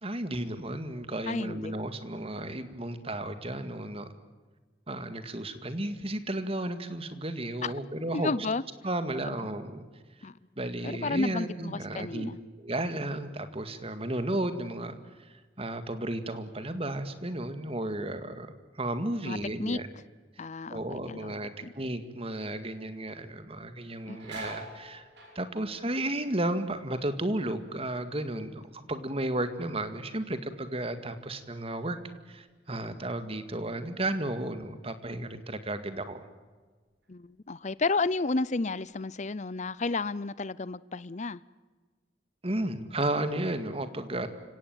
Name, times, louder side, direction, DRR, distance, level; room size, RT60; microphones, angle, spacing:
voice 1, 0.0-4.1 4.9-8.3 8.8-9.8 10.6-12.3 12.6-19.9 20.4-20.5 20.7-25.0 25.4-32.0 32.3-36.2 42.4-44.3, right 1 dB, 30° right, 2.1 m, -33 dB
voice 2, 1.3-1.8 7.6-7.7 8.1-8.6 9.4-9.5 10.2-10.4 10.8-12.4 19.2-19.8 20.4-21.3 21.6-21.7 24.1-24.2 37.1-41.4, left 3 dB, 40° left, 0.7 m, -32 dB
sound 1, 23.7-29.1 29.4-30.0 30.5-33.4 33.7-33.9 34.8-35.0 35.5-36.6 37.0-37.2 37.8-38.4 38.8-39.9, right 1 dB, 60° right, 7.0 m, -50 dB
29.5 x 17.5 x 9.0 m
head